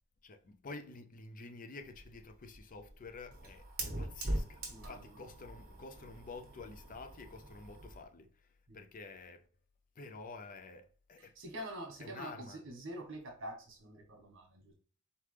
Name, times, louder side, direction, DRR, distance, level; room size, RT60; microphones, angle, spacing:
voice 1, 0.2-3.7 4.0-8.3 8.7-9.5 10.0-11.3 12.0-12.6, left 3 dB, 40° left, 0.5 m, -49 dB
Fire, 1.9-8.0, right 1 dB, 45° right, 1.3 m, -42 dB
voice 2, 4.7-5.2 8.7-8.8 11.3-14.7, right 1 dB, 60° right, 1.4 m, -46 dB
4.3 x 3.4 x 3.3 m
head